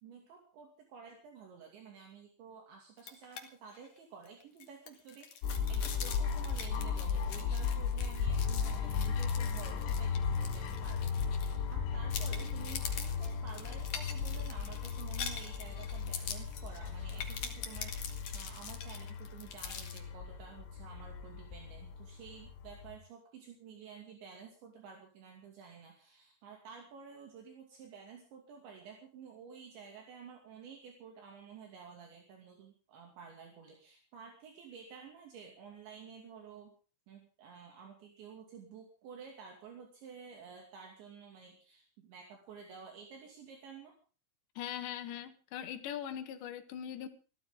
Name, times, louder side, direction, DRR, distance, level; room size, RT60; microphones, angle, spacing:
voice 1, 0.0-36.8 37.1-43.9, right 6 dB, 70° right, 1 dB, 4.8 m, -52 dB
sound 1, 3.0-3.4 3.7-3.9 4.2-11.7 12.1-20.0, left 7 dB, 50° left, 2.5 m, -44 dB
sound 2, 5.4-23.0, left 6 dB, 85° left, 4.8 m, -36 dB
voice 2, 44.6-47.1, left 10 dB, 70° left, 8 dB, 3.7 m, -41 dB
21.5 x 15.0 x 3.9 m, 0.38 s
omnidirectional pair, 5.6 m